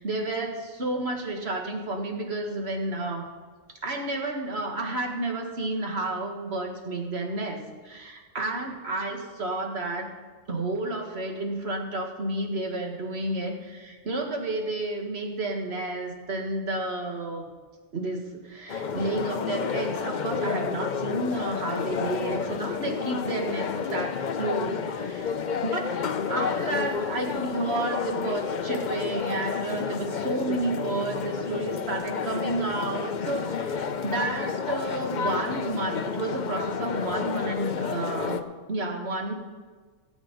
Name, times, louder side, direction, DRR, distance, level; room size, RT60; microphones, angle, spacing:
voice 1, 0.0-3.3 3.8-10.1 10.5-17.5 17.9-25.3 25.6-25.9 26.3-38.4 38.7-39.3, right 2 dB, 55° right, 1 dB, 2.1 m, -31 dB
sound 1, 18.7-38.4, left 6 dB, 50° left, 0.6 m, -30 dB
17.5 x 8.4 x 5.3 m, 1.4 s
omnidirectional pair, 1.3 m